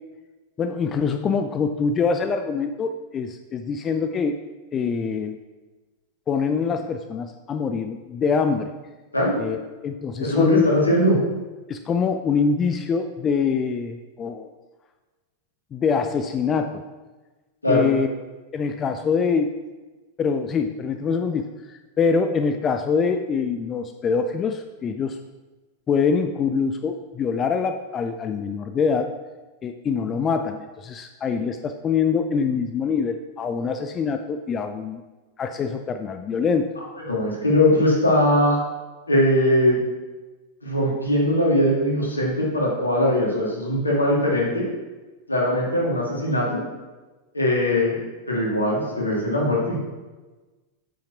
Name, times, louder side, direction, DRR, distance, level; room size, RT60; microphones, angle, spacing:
voice 1, 0.6-4.4 4.7-5.4 6.3-8.7 9.4-9.6 9.8-10.7 11.7-14.5 15.7-16.8 17.7-18.1 18.5-19.5 20.2-25.2 25.9-29.1 29.6-35.0 35.4-36.7, left 5 dB, 25° left, 7 dB, 0.4 m, -24 dB
voice 2, 10.2-11.2 17.6-17.8 37.1-38.6 39.1-39.8 40.6-44.7 45.3-46.6 47.3-49.8, left 1 dB, 80° left, -3 dB, 2.2 m, -20 dB
8.7 x 5.8 x 4.4 m, 1.2 s
figure-of-eight pair, 90°, 0 cm